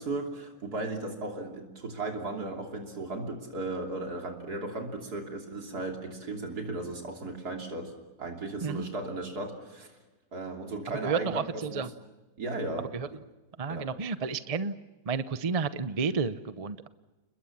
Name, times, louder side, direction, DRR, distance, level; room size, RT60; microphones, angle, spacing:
voice 1, 0.0-7.9 8.2-9.9 10.3-11.9 12.4-12.9 13.7-13.9, right 2 dB, 80° right, 2 dB, 3.6 m, -36 dB
voice 2, 11.0-11.9 12.9-13.1 13.6-14.7 15.1-16.9, right 5 dB, 30° right, 12 dB, 0.7 m, -31 dB
30.0 x 21.0 x 7.3 m, 1.1 s
omnidirectional pair, 1.7 m